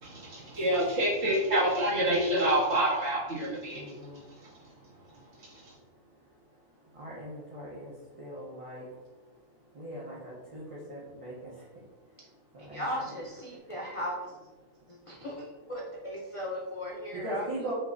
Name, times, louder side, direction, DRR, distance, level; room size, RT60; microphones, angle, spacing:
voice 1, 0.0-3.8, right 1 dB, 50° right, -9 dB, 1.8 m, -27 dB
voice 2, 3.7-4.2 7.0-7.9 8.2-8.8 9.8-10.6 10.9-11.5 12.6-13.1 17.2-17.7, right 1 dB, 30° right, -7 dB, 0.7 m, -40 dB
voice 3, 12.7-14.5 14.9-17.4, equal, 55° left, -3 dB, 0.3 m, -37 dB
5.6 x 3.0 x 2.6 m, 1.2 s
omnidirectional pair, 1.4 m